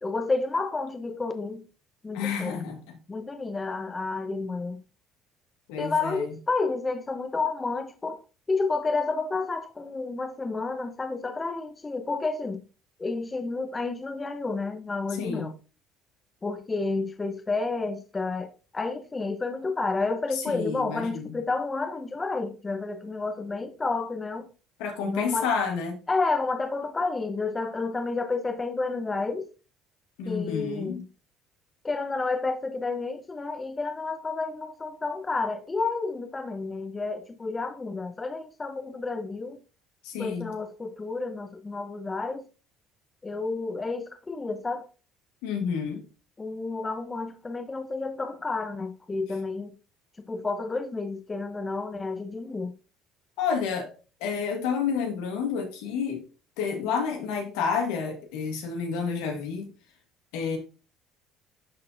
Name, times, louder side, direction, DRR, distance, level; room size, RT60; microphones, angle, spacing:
voice 1, 0.0-1.7 2.0-2.5 3.1-4.8 5.8-8.2 8.5-12.6 13.0-15.5 16.4-24.5 25.0-25.5 26.1-29.5 30.3-31.1 31.8-39.6 40.2-42.5 43.2-44.9 46.4-49.7 50.3-52.7, left 3 dB, 25° left, 0.8 m, -30 dB
voice 2, 2.1-3.0 5.7-6.3 15.1-15.5 20.3-21.4 24.8-26.0 30.2-31.0 40.0-40.5 45.4-46.0 53.4-53.9 54.2-56.2 56.6-59.7 60.3-60.6, left 6 dB, 80° left, 1.8 m, -30 dB
11.5 x 3.8 x 2.7 m
supercardioid pair, 80°, 0 cm